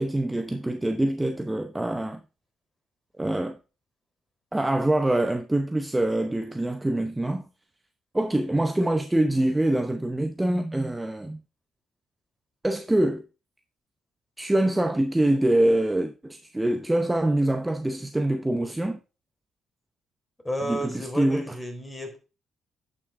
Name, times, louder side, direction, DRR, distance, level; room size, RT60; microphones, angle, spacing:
voice 1, 0.0-2.2 3.2-3.6 4.5-7.5 8.1-11.4 12.6-13.2 14.4-19.0 20.7-21.5, right 1 dB, 10° right, 0.8 m, -25 dB
voice 2, 20.4-22.2, equal, 15° left, 4.0 m, -32 dB
10.0 x 6.2 x 3.8 m
cardioid pair, 90°, 0 cm